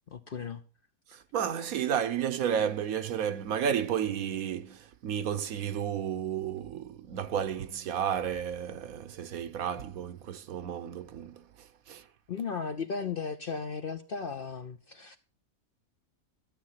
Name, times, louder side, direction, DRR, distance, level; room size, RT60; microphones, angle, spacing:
voice 1, 0.1-0.6 12.3-15.2, left 5 dB, 55° left, 0.6 m, -36 dB
voice 2, 1.1-11.5 11.9-12.0, right 8 dB, 75° right, 1.3 m, -32 dB
12.5 x 7.5 x 5.7 m
omnidirectional pair, 1.5 m